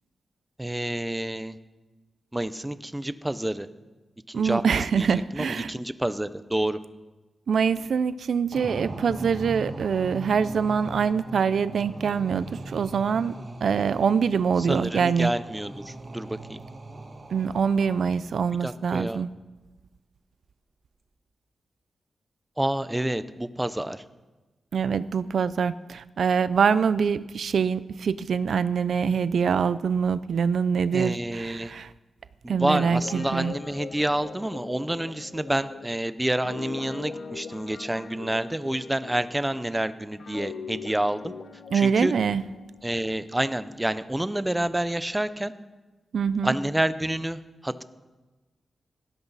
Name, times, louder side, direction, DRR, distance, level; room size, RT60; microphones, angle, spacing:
voice 1, 0.6-1.6 2.3-3.7 4.3-6.8 14.6-16.6 18.6-19.2 22.6-24.0 30.9-31.7 32.4-41.3 41.7-42.1 42.8-45.5 46.4-47.8, right 1 dB, 10° right, 13 dB, 0.6 m, -28 dB
voice 2, 4.3-5.7 7.5-15.3 17.3-19.3 24.7-31.9 32.5-33.5 41.7-42.4 46.1-46.5, right 6 dB, 65° right, 15 dB, 0.4 m, -24 dB
sound 1, 8.5-18.4, right 2 dB, 40° right, 1.7 m, -40 dB
Guitar, 32.5-39.7 40.2-43.9, left 5 dB, 70° left, 1.1 m, -42 dB
18.5 x 16.0 x 4.1 m, 1.2 s
wide cardioid pair, 155°, 0 cm